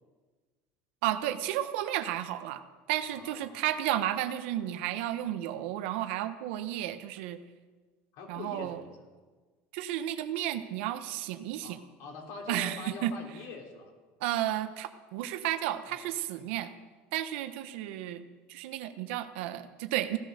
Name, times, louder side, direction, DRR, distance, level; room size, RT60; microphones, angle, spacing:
voice 1, 1.0-2.6 2.9-7.4 8.3-8.8 9.7-11.8 12.5-13.1 14.2-16.7 17.1-20.2, right 13 dB, 85° right, 10 dB, 1.1 m, -32 dB
voice 2, 3.0-3.6 8.1-9.0 11.6-13.9 15.9-16.0, left 4 dB, 65° left, 2 dB, 3.5 m, -44 dB
16.0 x 13.0 x 6.7 m, 1.4 s
cardioid pair, 150°, 6 cm